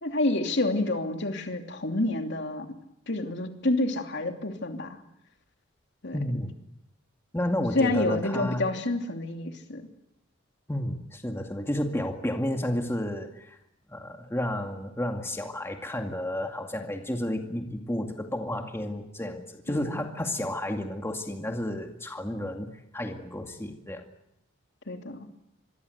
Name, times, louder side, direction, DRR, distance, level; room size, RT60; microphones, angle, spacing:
voice 1, 0.0-2.7 3.1-5.0 6.0-6.2 7.7-9.8 19.7-20.0 24.9-25.3, left 2 dB, 60° left, 4 dB, 3.0 m, -28 dB
voice 2, 6.1-6.5 7.3-8.6 10.7-13.6 13.9-22.7 22.9-24.1, left 1 dB, 15° left, 3 dB, 2.2 m, -31 dB
26.5 x 22.0 x 8.2 m, 0.81 s
head